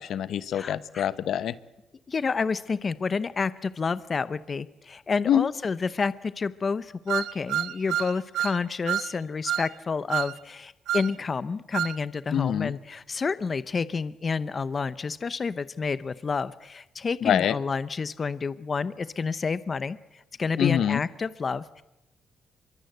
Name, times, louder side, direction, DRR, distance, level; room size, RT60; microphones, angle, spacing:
voice 1, 0.0-1.6 5.3-5.5 12.3-12.7 17.2-17.6 20.6-21.0, left 10 dB, 70° left, 14 dB, 1.1 m, -25 dB
voice 2, 0.5-1.1 2.1-21.8, left 5 dB, 35° left, 15 dB, 0.8 m, -29 dB
sound 1, 7.1-8.6 8.9-9.1 9.5-9.7 10.1-10.3 10.9-11.1 11.7-12.0, right 11 dB, 85° right, 0.9 m, -28 dB
24.5 x 23.0 x 8.0 m, 0.93 s
cardioid pair, 90°, 0 cm